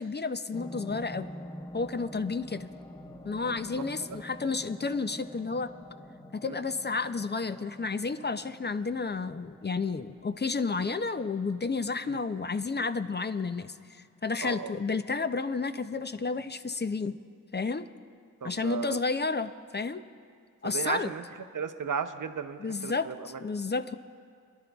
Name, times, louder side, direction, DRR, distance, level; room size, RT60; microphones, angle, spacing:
voice 1, 0.0-1.3 1.7-2.7 3.2-5.7 6.3-17.1 17.5-17.9 18.4-20.0 20.6-21.1 22.6-23.1 23.4-23.9, left 4 dB, 30° left, 10 dB, 0.4 m, -31 dB
sound 1, 0.5-13.5 13.9-14.0, left 1 dB, 10° left, 1.1 m, -47 dB
voice 2, 3.5-4.2 6.4-6.6 12.0-12.2 14.4-14.7 18.4-19.0 20.6-21.2 21.5-23.4, right 6 dB, 65° right, 9 dB, 0.6 m, -35 dB
27.0 x 11.5 x 2.3 m, 2.2 s
wide cardioid pair, 45°, 34 cm